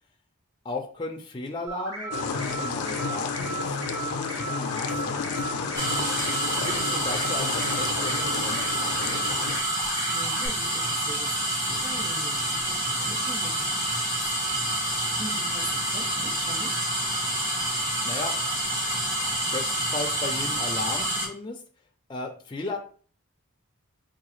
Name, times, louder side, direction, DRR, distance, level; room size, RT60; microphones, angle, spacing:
voice 1, 0.6-5.8 6.5-8.8 9.1-9.2 18.0-18.4 19.5-21.6 22.1-22.8, left 2 dB, 20° left, 2 dB, 0.4 m, -36 dB
sound 1, 1.7-10.5, right 2 dB, 85° right, 1.3 m, -35 dB
sound 2, 2.1-9.6, left 5 dB, 85° left, 0.4 m, -32 dB
sound 3, 5.7-21.3, right 1 dB, 15° right, 0.9 m, -28 dB
voice 2, 10.1-14.6 14.8-16.7, right 1 dB, 40° right, -7 dB, 1.5 m, -42 dB
4.7 x 2.3 x 3.1 m, 0.43 s
head